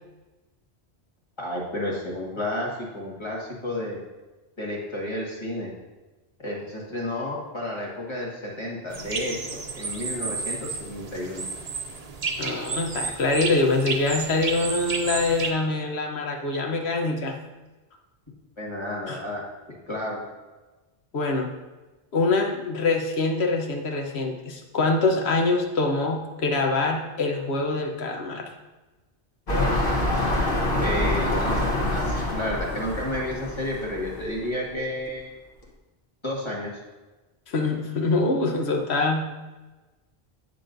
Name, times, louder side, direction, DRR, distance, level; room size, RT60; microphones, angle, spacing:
voice 1, 1.4-4.0 4.6-5.7 6.4-11.4 18.6-19.4 19.7-20.2 30.8-35.3 36.2-36.7, left 1 dB, 25° left, -3 dB, 1.7 m, -31 dB
sound 1, 8.9-15.5, right 4 dB, 40° right, 0.7 m, -32 dB
voice 2, 12.4-17.4 19.1-19.2 21.1-21.5 22.1-28.5 37.5-39.2, left 3 dB, 85° left, 2 dB, 1.2 m, -24 dB
sound 2, 29.5-34.5 35.1-35.2, left 1 dB, 60° left, 1.4 m, -26 dB
9.0 x 6.7 x 2.6 m, 1.2 s
omnidirectional pair, 1.1 m